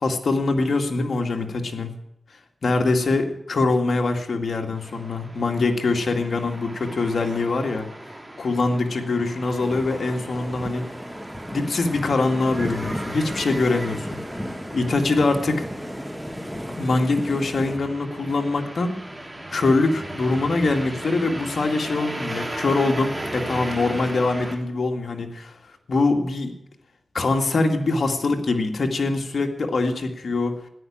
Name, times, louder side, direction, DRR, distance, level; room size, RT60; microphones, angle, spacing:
voice 1, 0.0-1.9 2.6-7.9 8.4-10.9 11.5-15.7 16.8-18.9 19.5-25.5 25.9-26.5 27.1-30.6, left 3 dB, 80° left, 3 dB, 2.1 m, -23 dB
sound 1, 4.8-24.6, right 1 dB, 15° right, 3.7 m, -36 dB
sound 2, 9.6-17.8, equal, 5° left, 1.7 m, -35 dB
13.5 x 10.5 x 8.7 m, 0.79 s
cardioid pair, 60°, 0 cm